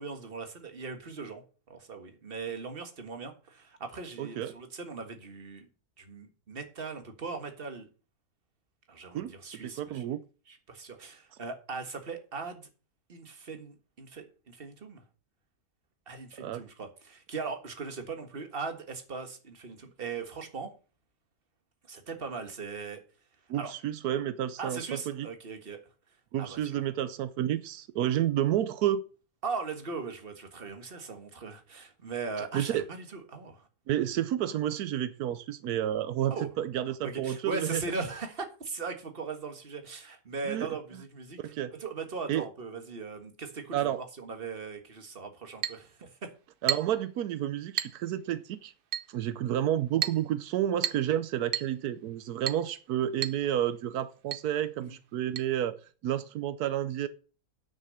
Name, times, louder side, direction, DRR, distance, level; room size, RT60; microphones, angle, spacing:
voice 1, 0.0-5.7 6.0-7.9 8.9-10.0 10.5-12.7 13.1-15.0 16.1-20.7 21.9-23.0 23.6-23.7 24.6-25.8 26.4-26.8 29.4-33.7 36.3-36.5 37.0-41.4 41.7-46.3, right 4 dB, 40° right, 1.7 m, -39 dB
voice 2, 4.2-4.5 9.1-10.2 16.4-16.6 23.5-25.3 26.3-29.1 32.5-32.8 33.9-37.8 40.4-40.8 41.4-41.8 42.3-42.5 43.7-44.0 46.6-48.7 49.1-57.1, right 11 dB, 85° right, 1.2 m, -30 dB
Chink clink, 45.6-45.8 46.7-47.0 47.8-48.0 48.9-49.1 50.0-50.2 50.8-51.1 51.5-51.7 52.5-52.7 53.2-53.4 53.7-53.8 54.3-54.5 55.4-55.5, right 9 dB, 55° right, 0.6 m, -32 dB
9.1 x 6.6 x 6.5 m
omnidirectional pair, 1.6 m